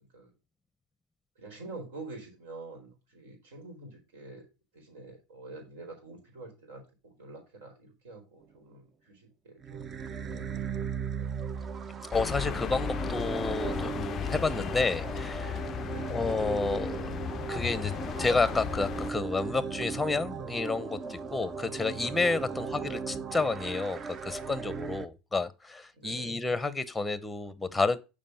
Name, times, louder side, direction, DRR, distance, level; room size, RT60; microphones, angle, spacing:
voice 1, 1.4-4.5 4.7-11.5 15.8-16.2 22.5-22.7 25.9-26.4, right 2 dB, 80° right, 4.4 m, -47 dB
sound 1, 9.6-25.1, right 6 dB, 35° right, 0.7 m, -37 dB
sound 2, 12.1-19.1, left 10 dB, 40° left, 0.3 m, -36 dB
voice 2, 12.1-15.7 16.1-17.1 17.5-17.9 18.2-28.0, left 3 dB, 10° left, 0.8 m, -30 dB
7.4 x 5.0 x 5.6 m
hypercardioid pair, 100°, 0 cm